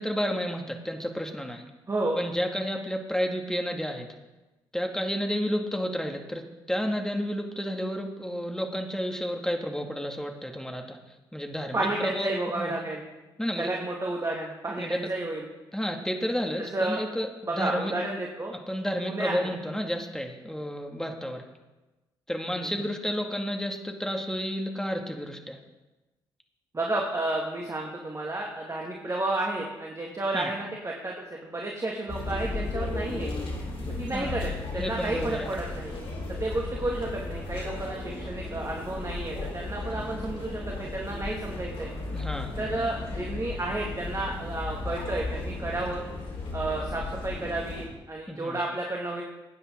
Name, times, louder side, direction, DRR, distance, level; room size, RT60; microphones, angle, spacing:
voice 1, 0.0-1.6 2.2-4.1 4.7-11.0 11.3-12.7 13.4-13.7 14.8-15.0 15.7-17.9 18.7-21.4 22.3-25.6 30.3-30.5 34.1-34.4 34.8-35.5 42.1-42.5 48.3-48.6, equal, 5° left, 3 dB, 2.3 m, -31 dB
voice 2, 1.9-2.2 11.7-13.1 13.6-15.5 16.7-17.0 17.4-18.5 19.0-19.5 22.4-22.7 26.7-33.3 34.0-35.9 36.3-41.9 42.6-46.0 46.5-49.2, right 2 dB, 25° right, -1 dB, 2.4 m, -31 dB
sound 1, 32.1-47.8, left 3 dB, 50° left, 4.2 m, -35 dB
18.5 x 9.7 x 4.0 m, 1.1 s
figure-of-eight pair, 45°, 12 cm